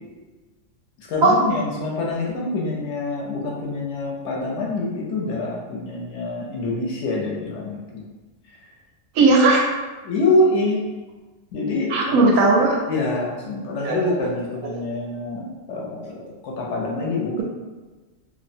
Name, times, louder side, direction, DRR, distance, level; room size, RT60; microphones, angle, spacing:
voice 1, 1.0-8.0 10.0-10.8 11.5-12.3 12.9-17.4, left 2 dB, 70° left, -3 dB, 0.8 m, -25 dB
voice 2, 9.2-9.6 11.9-12.8 13.8-14.0, right 3 dB, 85° right, -1 dB, 1.0 m, -16 dB
2.7 x 2.0 x 2.5 m, 1.2 s
omnidirectional pair, 1.4 m